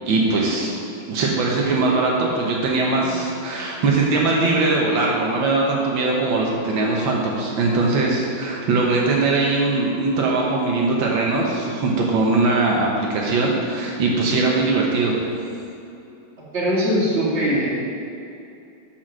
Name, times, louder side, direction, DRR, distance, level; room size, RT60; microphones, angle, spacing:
voice 1, 0.1-0.7 1.1-15.1, right 3 dB, 85° right, -2 dB, 1.8 m, -21 dB
voice 2, 16.5-17.7, equal, 35° right, -8 dB, 2.4 m, -21 dB
7.0 x 5.8 x 6.1 m, 2.6 s
omnidirectional pair, 2.0 m